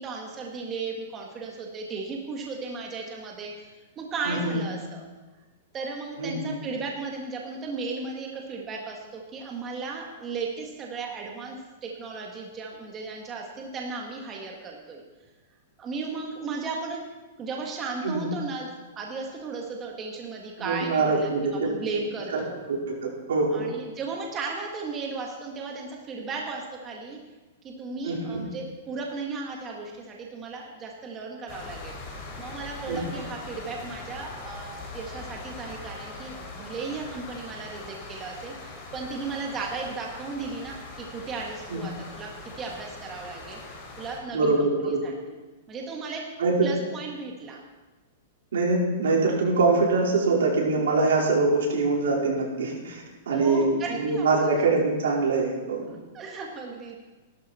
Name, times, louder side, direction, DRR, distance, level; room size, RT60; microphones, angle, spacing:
voice 1, 0.0-5.0 5.7-11.6 11.8-15.0 15.8-17.0 17.4-18.7 19.0-22.6 23.5-27.2 27.6-31.9 32.4-43.6 44.0-45.1 45.7-46.2 46.6-47.6 53.3-54.7 55.9-57.0, right 4 dB, 20° right, 0 dB, 1.9 m, -35 dB
voice 2, 4.2-4.6 6.2-6.6 18.0-18.3 20.6-21.5 22.3-22.4 22.7-23.7 28.0-28.4 32.9-33.0 41.7-41.8 44.3-45.0 46.4-46.7 48.5-55.9, right 3 dB, 85° right, -3 dB, 4.7 m, -24 dB
sound 1, 31.5-44.2, left 3 dB, 30° left, 4.7 m, -41 dB
16.0 x 12.5 x 4.4 m, 1.2 s
hypercardioid pair, 150°, 0 cm